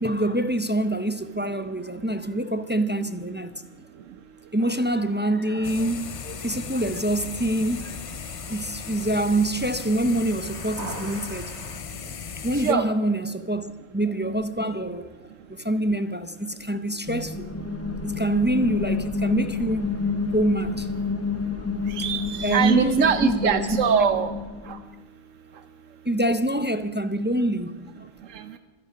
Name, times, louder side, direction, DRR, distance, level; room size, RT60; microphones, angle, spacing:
voice 1, 0.0-3.5 4.5-11.5 12.4-15.1 15.5-17.5 18.0-20.0 20.3-20.9 22.4-23.9 26.0-27.9, right 1 dB, 15° right, 0.3 m, -25 dB
sound 1, 4.6-11.8, right 3 dB, 60° right, 1.6 m, -45 dB
sound 2, 5.6-12.7, left 7 dB, 60° left, 0.3 m, -37 dB
sound 3, 17.1-24.8, left 4 dB, 15° left, 0.7 m, -30 dB
voice 2, 21.9-24.3 24.7-24.8 28.3-28.6, right 7 dB, 80° right, 1.1 m, -23 dB
26.0 x 10.5 x 5.0 m
omnidirectional pair, 1.3 m